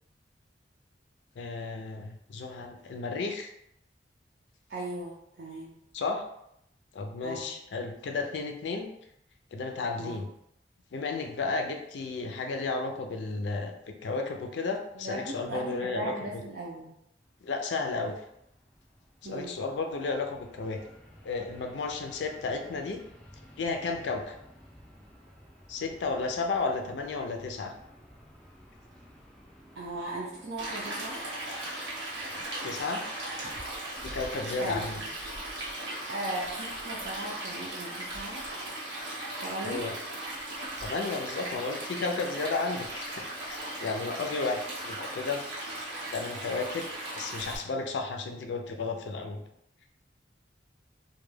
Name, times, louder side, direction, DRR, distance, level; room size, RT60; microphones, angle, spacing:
voice 1, 1.4-3.5 5.9-6.2 6.9-8.9 9.5-10.3 10.9-16.4 17.4-18.2 19.2-20.8 21.2-23.0 23.6-24.3 25.7-27.7 32.6-33.0 34.0-35.0 39.6-39.9 40.8-45.4 46.1-46.9 47.1-49.4, left 3 dB, 75° left, 4 dB, 0.4 m, -33 dB
voice 2, 4.7-5.8 7.2-7.5 10.0-10.2 14.9-17.0 19.2-19.5 29.7-31.3 34.6-35.1 36.1-38.5 39.4-39.9, right 1 dB, 60° right, -5 dB, 0.5 m, -37 dB
Fixed-wing aircraft airplane, 17.2-35.0, equal, 5° left, 0.4 m, -56 dB
Stream, 30.6-47.6, right 1 dB, 85° right, 1.0 m, -38 dB
2.2 x 2.2 x 3.2 m, 0.78 s
head